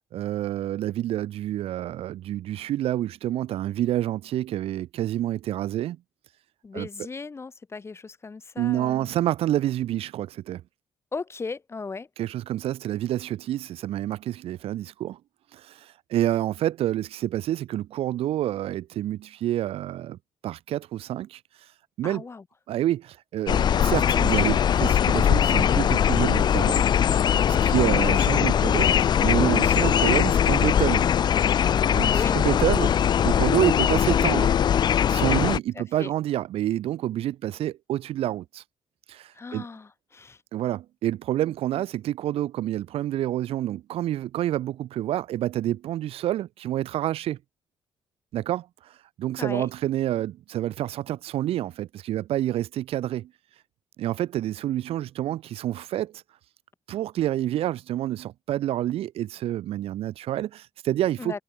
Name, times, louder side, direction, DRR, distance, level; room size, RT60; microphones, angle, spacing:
voice 1, 0.1-6.0 6.7-7.1 8.6-10.6 12.2-15.2 15.5-20.2 20.4-21.4 22.0-22.2 22.7-26.8 27.6-31.1 31.9-34.6 35.1-38.6 39.1-39.7 40.5-47.4 48.3-48.9 49.2-53.3 54.0-56.2 56.9-61.4, right 13 dB, 85° right, 0.6 m, -28 dB
voice 2, 6.6-9.1 11.1-12.1 22.0-22.4 27.5-27.9 32.0-32.4 35.8-36.1 39.3-40.4 49.4-49.7 61.2-61.4, left 4 dB, 25° left, 0.9 m, -36 dB
sound 1, 23.5-35.6, left 9 dB, 50° left, 0.3 m, -21 dB
cardioid pair, 105°, 10 cm